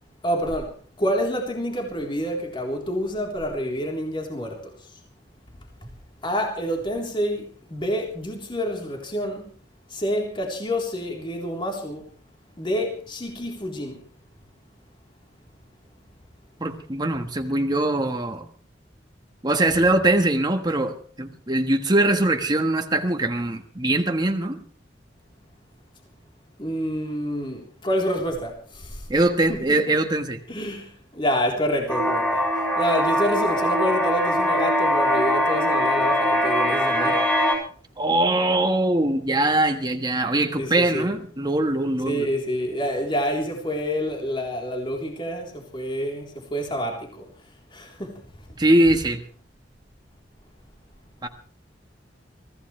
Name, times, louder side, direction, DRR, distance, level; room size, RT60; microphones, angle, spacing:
voice 1, 0.2-4.8 5.8-5.9 6.2-9.5 9.9-12.1 12.6-14.0 26.6-29.1 29.9-30.0 30.5-37.3 40.6-41.1 42.0-47.3 47.7-48.2, equal, 30° left, 3.7 m, -28 dB
voice 2, 16.6-18.5 19.4-24.6 29.1-30.4 38.0-42.3 48.6-49.2 51.2-51.3, right 1 dB, 25° right, 1.4 m, -22 dB
sound 1, 31.9-37.5, equal, 5° left, 7.6 m, -22 dB
24.0 x 16.0 x 3.3 m
head